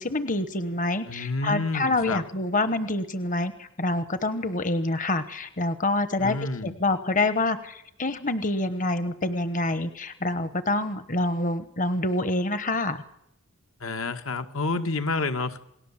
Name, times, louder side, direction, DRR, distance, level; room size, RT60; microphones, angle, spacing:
voice 1, 0.0-6.4 6.6-13.0, left 2 dB, 40° left, 12 dB, 1.1 m, -27 dB
voice 2, 1.1-2.2 6.2-6.8 13.8-15.6, left 3 dB, 75° left, 7 dB, 1.9 m, -29 dB
28.5 x 19.0 x 7.4 m, 0.79 s
head